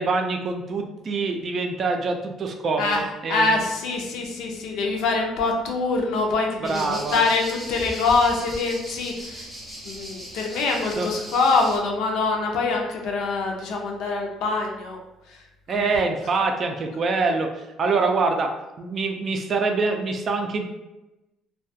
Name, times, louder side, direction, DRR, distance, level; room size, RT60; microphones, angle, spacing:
voice 1, 0.0-3.6 6.7-7.2 11.0-11.1 15.7-17.5 17.8-18.5 18.8-20.7, right 4 dB, 45° right, 4 dB, 0.3 m, -25 dB
voice 2, 2.8-9.5 9.8-15.0 15.3-15.4 15.7-15.8, left 3 dB, 80° left, 1 dB, 0.5 m, -24 dB
sound 1, 6.7-11.8, equal, ahead, 0.7 m, -38 dB
2.3 x 2.2 x 2.7 m, 1.0 s
cardioid pair, 110°, 0 cm